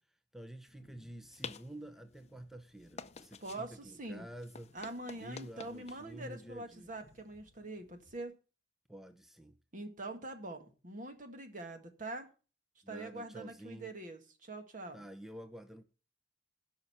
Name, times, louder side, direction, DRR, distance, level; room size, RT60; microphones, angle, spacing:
voice 1, 0.3-4.7 5.2-6.9 8.9-9.6 12.8-13.9 14.9-15.8, right 1 dB, ahead, 0.7 m, -49 dB
sound 1, 0.7-8.2, left 5 dB, 40° left, 0.6 m, -52 dB
voice 2, 3.4-4.3 4.7-8.3 9.7-12.3 12.9-15.0, right 2 dB, 50° right, 1.8 m, -44 dB
16.0 x 5.7 x 5.6 m
head